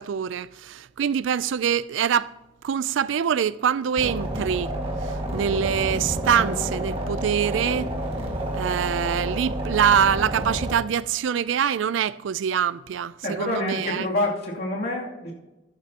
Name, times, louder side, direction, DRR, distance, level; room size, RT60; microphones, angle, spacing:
voice 1, 0.0-2.3 2.6-4.7 5.0-8.0 8.5-14.1, right 8 dB, 80° right, 0.4 m, -24 dB
sound 1, 4.0-10.7, right 1 dB, 30° right, 1.8 m, -29 dB
voice 2, 13.2-15.3, left 2 dB, 55° left, 2.8 m, -27 dB
13.5 x 11.5 x 2.9 m
head